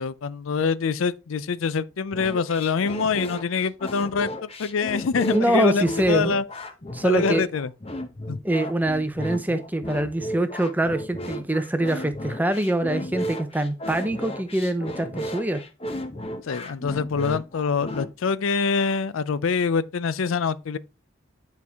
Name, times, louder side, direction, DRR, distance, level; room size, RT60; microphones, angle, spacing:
voice 1, 0.0-6.4 7.0-7.7 8.3-8.4 9.5-9.6 16.4-20.8, left 5 dB, 85° left, 0.5 m, -25 dB
sound 1, 2.1-18.1, equal, 30° left, 0.9 m, -34 dB
voice 2, 5.3-6.3 6.9-7.4 8.4-15.6, right 1 dB, 10° right, 0.6 m, -24 dB
9.4 x 4.6 x 3.5 m
head